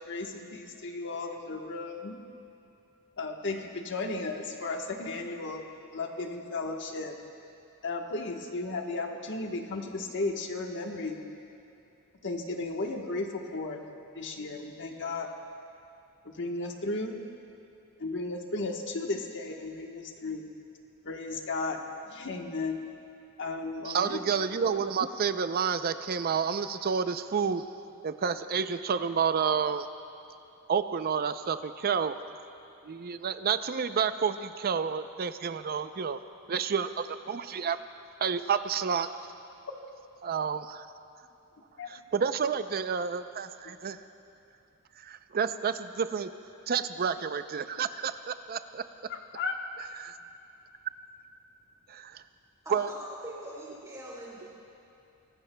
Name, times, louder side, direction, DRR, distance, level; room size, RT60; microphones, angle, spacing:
voice 1, 0.0-2.2 3.2-5.6 5.9-7.1 7.8-11.2 12.2-13.8 14.1-15.3 16.2-17.2 18.0-20.4 21.0-21.8 22.1-22.8 23.4-24.2 41.8-41.9 49.1-49.5, left 3 dB, 55° left, 2 dB, 1.2 m, -34 dB
voice 2, 23.9-27.6 28.0-29.9 30.7-32.2 32.8-36.2 36.5-37.8 38.2-39.1 40.2-40.9 41.9-44.0 45.0-46.3 46.7-48.8 50.0-50.2 51.9-52.2 52.7-52.9, right 6 dB, 45° right, 11 dB, 0.5 m, -30 dB
voice 3, 52.6-54.5, right 1 dB, 15° right, -5 dB, 3.3 m, -42 dB
23.5 x 18.0 x 2.2 m, 2.8 s
head